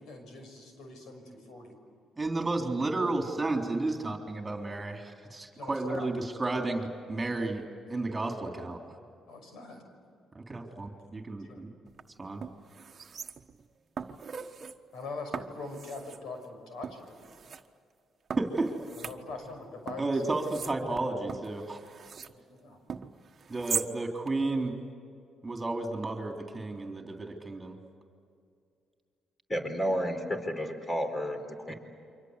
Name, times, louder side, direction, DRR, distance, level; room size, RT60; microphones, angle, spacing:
voice 1, 0.0-1.7 5.6-6.1 9.3-9.8 11.4-11.6 14.9-17.1 19.0-20.4 22.5-22.8, left 3 dB, 80° left, 5 dB, 6.2 m, -43 dB
voice 2, 2.2-7.6 7.9-8.9 10.3-11.7 12.2-12.4 18.4-18.7 20.0-21.8 23.5-24.8 25.4-27.8 31.7-31.8, right 2 dB, 25° right, 2 dB, 3.6 m, -32 dB
sound 1, 11.9-12.0 12.4-13.6 14.0-14.8 15.3-16.2 16.8-17.6 18.3-19.6 19.9-22.4 22.9-23.9 24.3-24.4, right 6 dB, 45° right, 1.3 m, -39 dB
voice 3, 29.5-31.7, equal, 25° left, 6 dB, 4.2 m, -31 dB
28.5 x 25.0 x 8.3 m, 2.4 s
cardioid pair, 90°, 0 cm